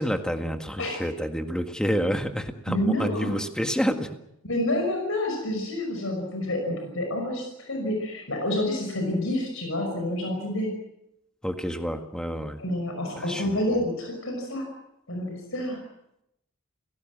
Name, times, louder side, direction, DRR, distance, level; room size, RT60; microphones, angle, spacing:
voice 1, 0.0-4.2 11.4-12.6 13.2-13.6, equal, 5° left, 5 dB, 1.7 m, -28 dB
voice 2, 2.7-3.3 4.4-10.7 12.6-14.7 15.1-15.8, left 1 dB, 65° left, 3 dB, 5.8 m, -28 dB
29.0 x 17.5 x 7.5 m, 0.84 s
head